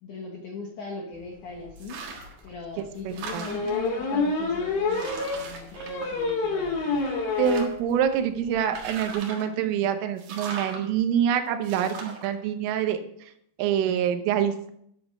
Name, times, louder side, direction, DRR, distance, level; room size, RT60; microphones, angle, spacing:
voice 1, 0.0-2.0 2.4-7.0, left 4 dB, 90° left, -1 dB, 1.7 m, -39 dB
sound 1, 1.7-1.8 2.2-2.3 3.5-7.8 8.1-8.2 8.5-8.6 8.8-9.0, left 3 dB, 70° left, 5.0 m, -27 dB
sound 2, 1.8-2.4 2.8-3.9 4.5-4.6 4.9-6.6 7.0-7.9 8.6-9.6 10.2-10.8 11.6-12.3, right 4 dB, 60° right, 2.4 m, -39 dB
voice 2, 3.1-3.5 7.4-13.0 13.6-14.7, right 9 dB, 80° right, 7 dB, 3.5 m, -26 dB
10.0 x 8.1 x 5.5 m, 0.71 s
omnidirectional pair, 5.9 m